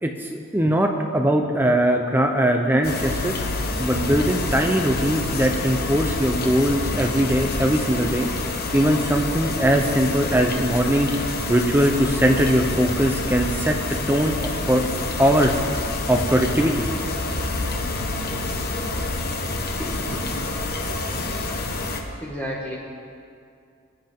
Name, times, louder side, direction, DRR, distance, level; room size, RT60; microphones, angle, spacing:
voice 1, 0.0-3.4 3.8-8.3 8.7-13.8 14.1-16.9, right 1 dB, 10° right, 3 dB, 0.7 m, -21 dB
sound 1, 2.8-22.0, left 2 dB, 50° left, 1.2 m, -27 dB
voice 2, 19.8-20.3 20.9-21.0 22.2-22.8, equal, 10° left, -5 dB, 1.2 m, -33 dB
24.5 x 10.0 x 3.7 m, 2.4 s
head